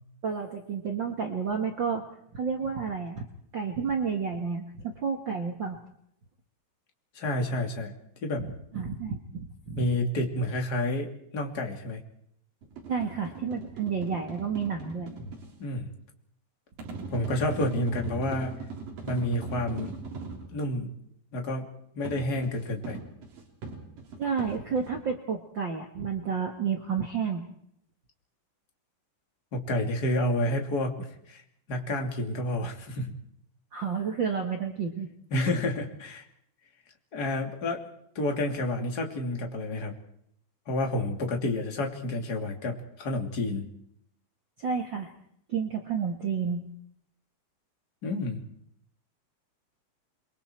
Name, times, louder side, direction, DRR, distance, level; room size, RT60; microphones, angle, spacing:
voice 1, 0.2-2.1 2.3-3.3 3.5-5.8 8.7-9.8 12.9-15.3 24.2-27.5 33.7-35.1 44.6-45.1 45.5-46.6, right 6 dB, 85° right, 3 dB, 1.0 m, -31 dB
voice 2, 7.1-7.9 8.2-8.5 9.7-12.0 15.6-15.9 17.1-18.5 19.1-19.9 20.5-20.9 21.3-21.7 21.9-23.0 29.5-31.4 31.7-33.1 35.3-36.3 37.1-37.9 38.1-39.9 40.7-43.7 48.0-48.4, left 1 dB, 25° left, 3 dB, 2.7 m, -29 dB
sound 1, 12.6-15.5 16.8-20.5 22.1-25.0, right 4 dB, 55° right, 5.0 m, -39 dB
29.5 x 23.0 x 4.5 m, 0.72 s
omnidirectional pair, 4.8 m